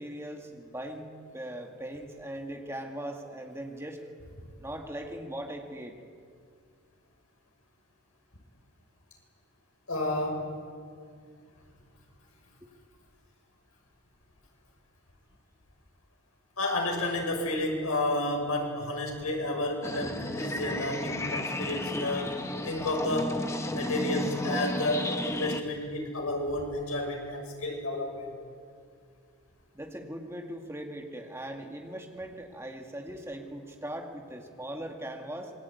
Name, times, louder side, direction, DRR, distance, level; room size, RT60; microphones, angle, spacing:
voice 1, 0.0-4.0 4.6-6.0 29.7-35.5, right 1 dB, 10° right, 3 dB, 2.1 m, -40 dB
voice 2, 9.9-10.5 16.6-22.4 22.6-23.4 23.7-28.4, left 1 dB, 85° left, 2 dB, 6.5 m, -31 dB
sound 1, 19.8-25.6, left 1 dB, 15° left, 1.1 m, -33 dB
26.5 x 23.0 x 9.6 m, 2.2 s
head